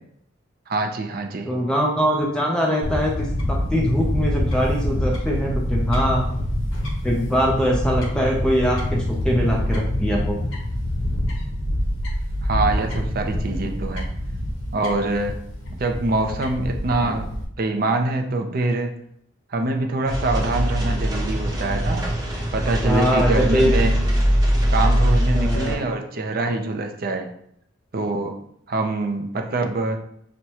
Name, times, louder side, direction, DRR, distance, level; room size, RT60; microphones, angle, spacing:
voice 1, 0.7-1.5 12.4-14.1 14.7-15.4 15.7-17.3 17.6-18.9 19.5-22.1 22.5-24.0 24.7-27.3 27.9-28.4 28.7-30.0, right 2 dB, 50° right, 5 dB, 0.5 m, -24 dB
voice 2, 1.5-6.3 7.0-10.4 22.8-23.7 25.3-25.8, equal, 5° left, -2 dB, 0.5 m, -22 dB
Fowl / Bird, 2.8-17.4, left 1 dB, 90° left, 0.8 m, -26 dB
sound 1, 20.1-25.7, equal, 20° right, 0.8 m, -21 dB
6.1 x 2.2 x 2.8 m, 0.70 s
head